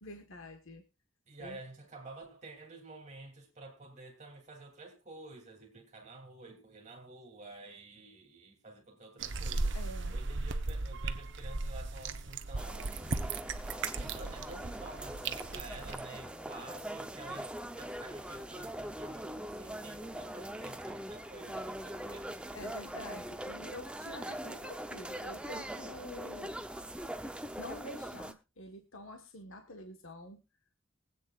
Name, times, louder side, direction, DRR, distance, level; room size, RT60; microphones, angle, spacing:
voice 1, 0.0-0.8 1.4-1.6 9.7-10.1 22.5-26.5 27.6-30.4, left 1 dB, 70° left, 1.4 m, -47 dB
voice 2, 1.3-9.8 10.1-13.3 14.0-22.4, right 2 dB, 35° right, 2.9 m, -50 dB
sound 1, 9.2-16.0, right 3 dB, 55° right, 0.9 m, -37 dB
sound 2, 12.6-28.3, right 1 dB, 5° right, 0.7 m, -42 dB
23.5 x 8.5 x 2.4 m
head